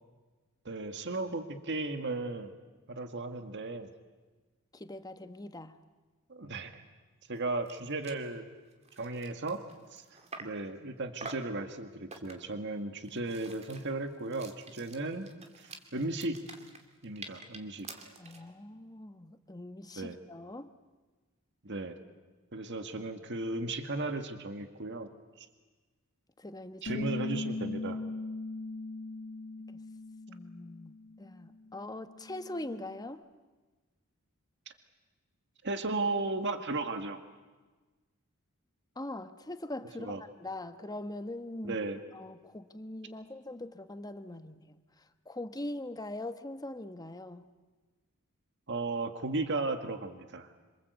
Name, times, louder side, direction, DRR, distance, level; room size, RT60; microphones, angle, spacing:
voice 1, 0.7-2.5 2.9-3.9 6.3-6.8 7.3-8.5 9.0-9.7 9.9-10.0 10.4-15.3 15.6-16.4 17.0-17.9 20.0-20.2 21.6-22.0 22.5-25.1 25.4-25.5 26.8-28.0 34.7-34.8 35.6-37.2 40.0-40.2 41.6-42.0 48.7-50.5, right 2 dB, 55° right, 7 dB, 1.9 m, -35 dB
voice 2, 4.7-5.8 18.2-20.7 26.4-27.1 29.7-29.8 30.3-33.2 39.0-41.8 42.1-44.8 45.3-47.5, left 1 dB, 20° left, 10 dB, 1.1 m, -42 dB
sound 1, 7.4-7.5 7.7-7.8 8.0-8.3 8.7-10.7 11.2-11.6 12.1-12.6 13.0-18.5, right 3 dB, 30° right, 2.4 m, -48 dB
Bass guitar, 26.9-33.1, left 2 dB, 60° left, 2.5 m, -40 dB
27.0 x 26.0 x 8.2 m, 1.3 s
head